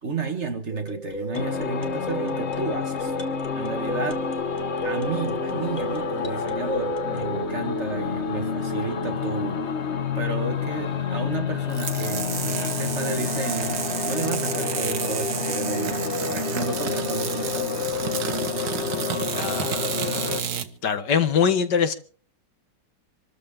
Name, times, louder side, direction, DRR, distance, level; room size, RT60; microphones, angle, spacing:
voice 1, 0.0-3.1 3.6-4.3 4.8-9.6 10.2-17.8, right 3 dB, 40° right, 1.8 m, -32 dB
sound 1, 0.7-7.4, right 1 dB, 25° left, 1.9 m, -33 dB
sound 2, 1.3-20.4, left 6 dB, 45° left, 1.2 m, -29 dB
sound 3, 11.7-20.7, right 8 dB, 75° right, 1.9 m, -30 dB
voice 2, 19.3-19.8 20.8-21.9, left 7 dB, 65° left, 2.0 m, -22 dB
26.5 x 13.5 x 3.7 m
omnidirectional pair, 2.0 m